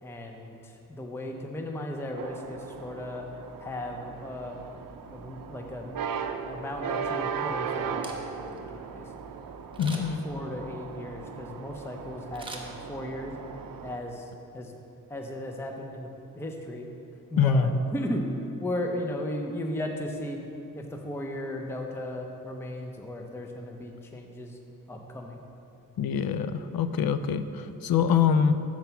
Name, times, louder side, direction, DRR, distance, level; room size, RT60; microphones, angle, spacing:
voice 1, 0.0-3.2 3.6-4.6 5.1-6.0 6.4-9.2 9.9-13.3 13.8-14.8 15.1-16.1 16.3-16.9 17.3-18.3 18.6-20.4 20.7-24.6 24.9-25.4, left 1 dB, 5° left, 2 dB, 0.5 m, -36 dB
sound 1, 2.2-14.0, right 6 dB, 65° right, 0.5 m, -37 dB
Camera, 8.0-8.6 9.7-10.3 12.3-13.3 13.7-13.8, right 2 dB, 15° right, 0.9 m, -43 dB
voice 2, 9.8-10.2 17.4-17.7 26.0-28.5, left 7 dB, 80° left, 11 dB, 0.5 m, -24 dB
7.3 x 4.6 x 6.9 m, 2.7 s
wide cardioid pair, 110°, 36 cm